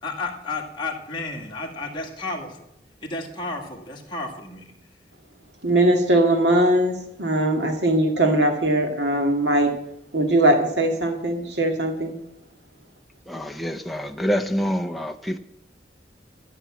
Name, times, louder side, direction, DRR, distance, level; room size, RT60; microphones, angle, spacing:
voice 1, 0.0-2.7 3.0-4.7, left 3 dB, 25° left, -1 dB, 2.1 m, -32 dB
voice 2, 5.6-9.7 10.1-12.2, right 1 dB, 80° right, 3 dB, 2.1 m, -20 dB
voice 3, 13.3-15.4, equal, ahead, 2 dB, 0.7 m, -26 dB
13.5 x 7.1 x 7.6 m, 0.80 s
head